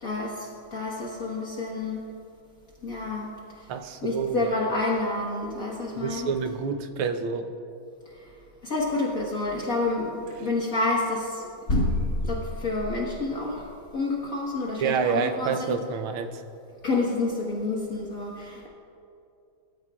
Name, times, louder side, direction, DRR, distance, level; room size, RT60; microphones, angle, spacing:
voice 1, 0.0-2.0 2.8-3.3 4.0-6.3 8.2-8.3 8.6-10.1 10.4-12.0 12.2-15.8 16.8-18.7, left 2 dB, 45° left, -4 dB, 1.9 m, -28 dB
voice 2, 3.7-4.5 6.0-7.5 14.8-16.4, right 6 dB, 90° right, 7 dB, 1.7 m, -28 dB
22.5 x 14.0 x 2.4 m, 2.5 s
omnidirectional pair, 2.3 m